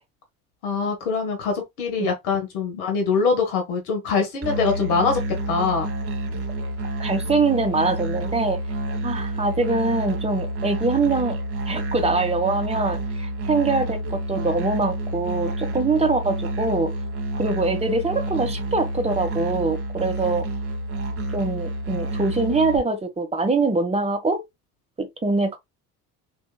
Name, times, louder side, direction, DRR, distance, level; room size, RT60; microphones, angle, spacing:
voice 1, 0.6-5.9, left 5 dB, 75° left, 1.5 m, -23 dB
Musical instrument, 4.4-22.8, right 1 dB, 30° right, 1.4 m, -29 dB
voice 2, 7.0-8.6 9.0-11.3 11.6-16.9 17.4-20.5 21.3-24.4 25.0-25.6, right 3 dB, 15° right, 1.3 m, -23 dB
5.3 x 3.5 x 2.3 m
hypercardioid pair, 65°, 44 cm